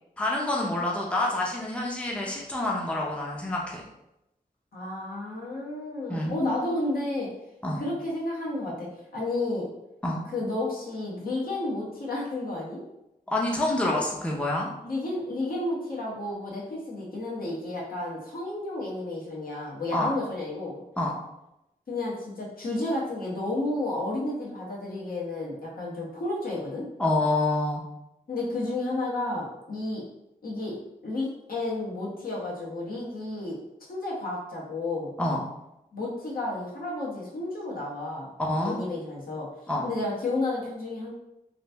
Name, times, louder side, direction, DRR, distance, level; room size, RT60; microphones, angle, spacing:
voice 1, 0.2-3.8 6.1-6.4 7.6-7.8 10.0-10.2 13.3-14.7 19.9-20.1 21.0-21.1 27.0-27.8 35.2-35.4 38.4-38.8 39.7-39.8, left 2 dB, 10° left, -2 dB, 0.5 m, -27 dB
voice 2, 4.7-7.3 7.8-8.9 9.1-9.7 10.3-12.8 14.8-20.7 21.9-26.9 28.3-30.0 30.4-30.8 31.0-33.6 33.9-35.1 35.9-38.3 38.6-39.5 39.8-41.1, left 2 dB, 70° left, -4 dB, 1.1 m, -31 dB
3.0 x 2.6 x 3.3 m, 0.89 s
wide cardioid pair, 105°, 15 cm